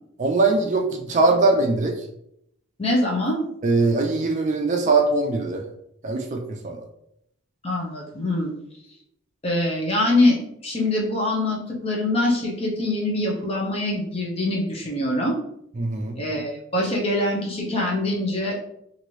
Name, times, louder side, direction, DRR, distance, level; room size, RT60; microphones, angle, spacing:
voice 1, 0.2-2.0 3.6-5.6 6.0-6.8 15.8-16.2, right 3 dB, 35° right, 3 dB, 0.3 m, -21 dB
voice 2, 2.8-3.5 7.6-8.5 9.4-10.4 10.6-15.3 16.2-18.6, left 1 dB, 30° left, -2 dB, 0.7 m, -24 dB
3.0 x 2.6 x 3.0 m, 0.75 s
head